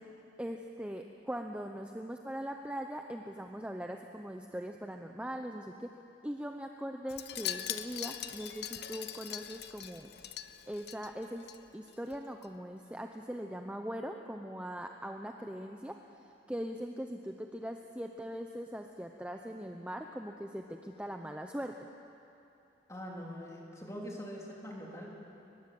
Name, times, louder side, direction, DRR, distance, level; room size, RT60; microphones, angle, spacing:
voice 1, 0.4-5.9 6.2-10.1 10.7-11.5 11.7-16.0 16.5-21.8, equal, 5° right, 4 dB, 0.7 m, -41 dB
Wind chime, 7.1-11.6 11.9-12.2 12.4-12.5, left 11 dB, 60° left, 0.9 m, -41 dB
voice 2, 22.9-25.2, equal, 15° left, -2 dB, 3.7 m, -43 dB
22.5 x 20.5 x 7.8 m, 2.7 s
head